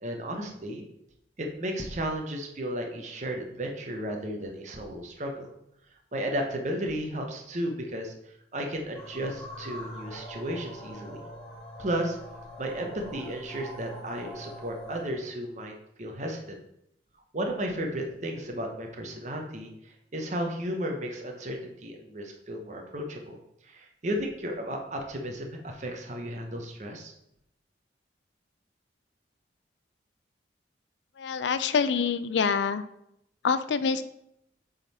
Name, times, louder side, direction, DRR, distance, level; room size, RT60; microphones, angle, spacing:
voice 1, 0.0-0.8 1.4-5.5 6.1-8.1 8.5-11.2 11.8-12.2 12.6-15.7 16.0-16.6 17.3-23.4 23.6-27.1, right 1 dB, 40° right, 2 dB, 0.8 m, -34 dB
sound 1, 8.9-15.1, equal, 5° left, 2.0 m, -43 dB
voice 2, 31.2-32.8 33.4-34.0, left 5 dB, 80° left, 13 dB, 0.4 m, -26 dB
7.4 x 3.8 x 4.1 m, 0.79 s
head